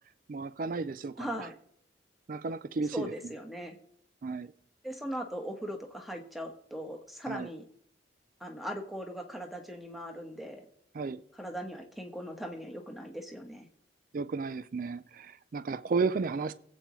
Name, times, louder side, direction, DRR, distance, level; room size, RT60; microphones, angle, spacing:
voice 1, 0.3-1.5 2.3-3.1 4.2-4.5 7.3-7.5 10.9-11.2 14.1-16.5, right 4 dB, 45° right, 0.4 m, -33 dB
voice 2, 1.2-1.5 2.9-3.8 4.8-7.6 8.4-10.6 11.3-13.7, equal, ahead, 1.3 m, -39 dB
22.0 x 8.2 x 3.1 m
head